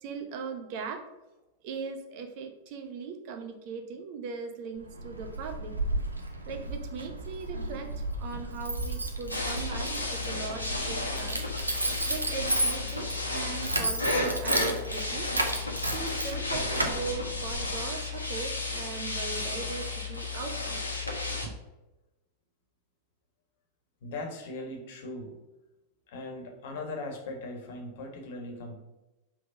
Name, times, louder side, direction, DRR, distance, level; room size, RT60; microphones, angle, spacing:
voice 1, 0.0-1.0 1.6-5.7 6.5-7.9 8.2-11.5 12.1-15.3 15.9-20.8 21.4-21.5, right 5 dB, 45° right, 6 dB, 0.8 m, -39 dB
Keys jangling, 4.8-17.8, right 2 dB, 80° right, 0.7 m, -33 dB
sound 1, 9.3-21.5, left 2 dB, 80° left, 1.1 m, -33 dB
voice 2, 24.0-25.3 26.1-28.8, left 2 dB, 55° left, 2 dB, 1.4 m, -39 dB
5.5 x 3.6 x 5.3 m, 1.0 s
figure-of-eight pair, 90°, 0 cm